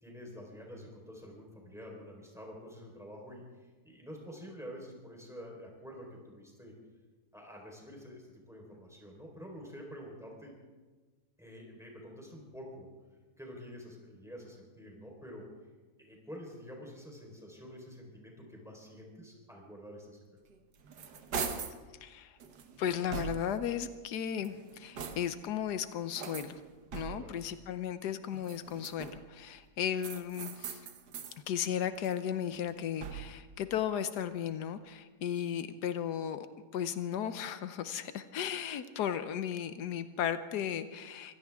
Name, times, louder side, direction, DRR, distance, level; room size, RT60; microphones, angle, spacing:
voice 1, 0.0-6.7 7.3-10.5 11.4-12.9 13.4-15.5 16.0-20.2 27.2-27.3, equal, ahead, -1 dB, 4.1 m, -48 dB
sound 1, 20.5-21.8 22.4-23.7 24.3-25.5 26.2-27.4 28.3-29.4 30.0-31.4 31.8-33.5, right 6 dB, 90° right, 1.8 m, -42 dB
voice 2, 22.0-22.4 22.8-26.6 26.9-30.9 31.5-36.5 36.7-41.4, left 9 dB, 90° left, 11 dB, 1.4 m, -35 dB
24.0 x 16.5 x 3.6 m, 1.3 s
omnidirectional pair, 1.7 m